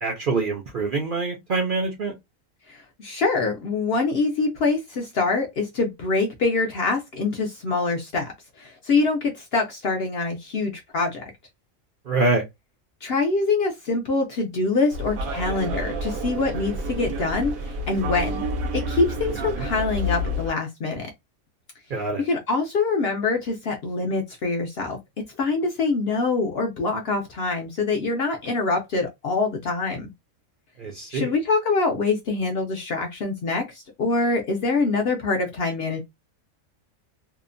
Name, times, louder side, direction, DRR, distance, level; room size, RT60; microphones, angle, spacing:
voice 1, 0.0-2.1 12.1-12.4 19.4-19.7 21.9-22.2 30.8-31.3, right 3 dB, 55° right, 0.6 m, -25 dB
voice 2, 2.7-8.3 8.6-11.2 13.0-17.5 17.9-18.4 18.7-21.1 22.2-25.0 25.4-30.1 31.1-36.0, left 3 dB, 60° left, 0.7 m, -24 dB
sound 1, 14.9-20.5, equal, 85° right, 1.1 m, -29 dB
2.8 x 2.0 x 2.5 m
omnidirectional pair, 1.4 m